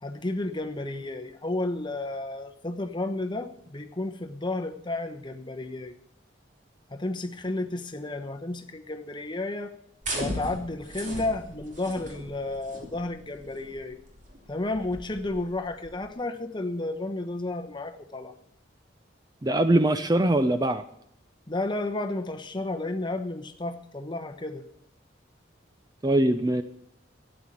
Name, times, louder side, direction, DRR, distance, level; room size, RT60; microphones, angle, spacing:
voice 1, 0.0-5.9 6.9-9.8 10.1-14.0 14.5-18.3 21.5-24.7, left 2 dB, 25° left, 7 dB, 1.0 m, -32 dB
sound 1, 10.0-16.1, right 1 dB, 40° right, 3.1 m, -38 dB
voice 2, 19.4-20.8 26.0-26.6, right 1 dB, 20° right, 10 dB, 0.5 m, -22 dB
13.0 x 9.0 x 8.3 m, 0.72 s
head